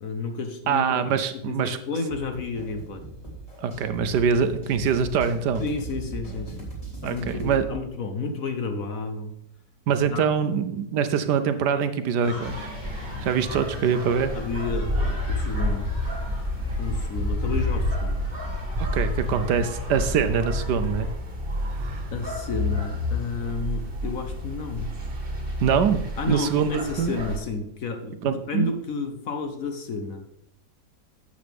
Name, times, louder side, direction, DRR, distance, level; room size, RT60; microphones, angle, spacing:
voice 1, 0.0-3.0 5.6-6.7 7.0-9.3 10.1-10.3 14.3-15.9 16.8-18.2 22.1-24.9 26.2-30.2, left 3 dB, 55° left, 6 dB, 1.2 m, -31 dB
voice 2, 0.7-1.8 3.6-5.6 7.0-7.6 9.9-12.7 13.2-14.3 18.8-21.1 21.7-22.0 25.6-27.1 28.2-28.7, right 7 dB, 70° right, 10 dB, 1.3 m, -24 dB
sound 1, 2.1-7.7, right 3 dB, 20° left, 3.5 m, -39 dB
sound 2, 12.2-21.1, left 2 dB, 70° left, 4.7 m, -41 dB
sound 3, 12.4-27.4, left 1 dB, 30° right, 1.8 m, -29 dB
12.0 x 7.9 x 3.5 m, 0.75 s
omnidirectional pair, 1.9 m